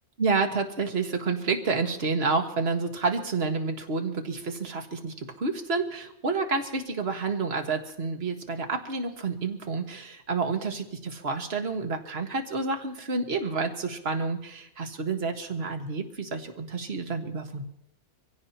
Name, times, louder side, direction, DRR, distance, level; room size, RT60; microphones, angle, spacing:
voice 1, 0.2-17.6, right 4 dB, 45° right, 4 dB, 1.8 m, -29 dB
25.5 x 16.5 x 2.9 m, 0.80 s
omnidirectional pair, 1.5 m